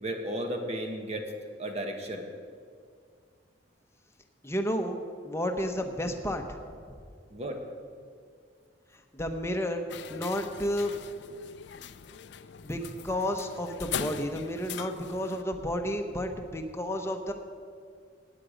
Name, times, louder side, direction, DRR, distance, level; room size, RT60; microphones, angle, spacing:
voice 1, 0.0-1.3 1.6-2.3 7.3-7.6, right 1 dB, 35° right, 4 dB, 1.4 m, -34 dB
voice 2, 4.4-5.0 5.2-6.4 9.1-9.8 10.1-10.9 12.6-17.3, equal, 15° left, 5 dB, 0.9 m, -31 dB
sound 1, 9.9-15.4, left 8 dB, 65° left, 0.5 m, -41 dB
17.0 x 9.0 x 5.1 m, 2.1 s
head